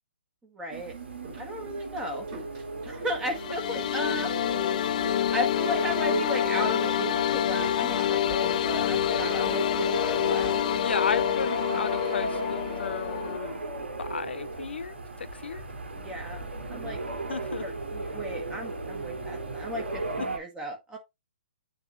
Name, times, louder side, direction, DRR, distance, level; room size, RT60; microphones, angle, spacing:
voice 1, 0.4-1.0 1.3-2.3 2.8-4.3 5.3-10.6 11.7-11.9 15.9-17.0 17.6-21.0, equal, 10° right, 1.6 m, -35 dB
sound 1, 0.7-20.4, right 2 dB, 75° right, 2.5 m, -35 dB
sound 2, 0.8-10.5, right 3 dB, 40° right, 4.4 m, -50 dB
sound 3, 3.2-13.4, left 12 dB, 45° left, 0.4 m, -27 dB
voice 2, 10.8-13.6 14.0-15.7 17.3-17.7 20.2-20.3, left 5 dB, 75° left, 0.7 m, -34 dB
9.1 x 3.7 x 3.1 m
figure-of-eight pair, 130°, 6 cm